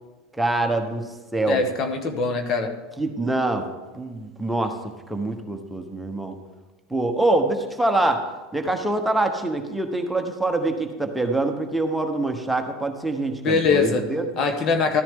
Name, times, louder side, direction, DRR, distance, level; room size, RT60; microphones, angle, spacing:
voice 1, 0.3-1.6 3.0-3.7 3.9-4.8 5.1-6.4 6.9-8.2 8.5-14.3, right 2 dB, 5° right, 4 dB, 1.2 m, -25 dB
voice 2, 1.5-2.7 13.4-14.0 14.4-15.0, left 4 dB, 45° left, 7 dB, 1.2 m, -22 dB
13.5 x 10.5 x 3.8 m, 1.2 s
hypercardioid pair, 90°, 0 cm